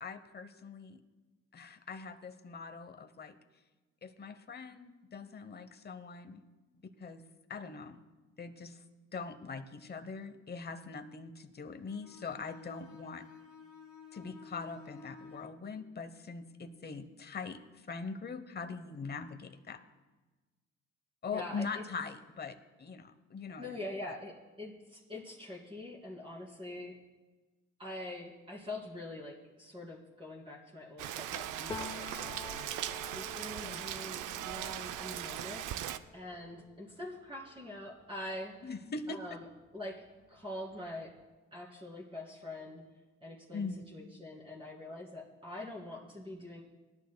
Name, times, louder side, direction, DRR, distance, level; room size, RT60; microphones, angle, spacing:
voice 1, 0.0-1.0 1.5-3.4 4.0-6.4 7.0-7.2 7.5-8.0 8.4-8.8 9.1-13.2 14.1-17.6 17.9-19.8 21.2-23.7 33.6-33.9 35.8-35.9 38.6-39.2 43.5-43.8, left 4 dB, 35° left, 10 dB, 0.9 m, -42 dB
Bowed string instrument, 11.8-15.6, left 5 dB, 75° left, 1.5 m, -53 dB
voice 2, 21.3-21.8 23.6-26.9 27.8-35.6 36.1-38.7 39.1-39.5 39.7-40.0 40.3-41.1 41.5-42.8 43.2-46.6, left 1 dB, 15° right, -5 dB, 2.7 m, -44 dB
Rain, 31.0-36.0, right 12 dB, 85° right, 0.5 m, -39 dB
Piano, 31.7-39.3 39.7-41.2, left 5 dB, 15° left, 0.4 m, -50 dB
18.0 x 11.5 x 2.2 m, 1.2 s
cardioid pair, 90°, 30 cm